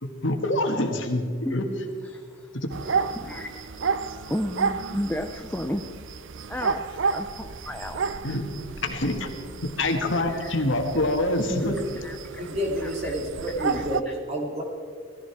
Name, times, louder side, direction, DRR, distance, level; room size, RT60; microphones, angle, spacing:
voice 1, 0.0-1.2 1.5-1.6 2.9-3.0 8.2-8.5 8.8-9.3 9.8-11.8, left 1 dB, 60° left, 4 dB, 1.9 m, -25 dB
voice 2, 2.0-2.5 3.1-3.6 4.3-6.0 6.5-8.0 10.3-10.6 11.5-11.7 12.0-12.5 12.8-13.1 13.7-14.2, left 1 dB, 10° left, 4 dB, 0.6 m, -33 dB
sound 1, 2.7-14.0, right 5 dB, 60° right, 0.6 m, -32 dB
voice 3, 12.5-14.6, equal, 30° right, -1 dB, 2.9 m, -29 dB
19.0 x 15.0 x 4.8 m, 2.2 s
head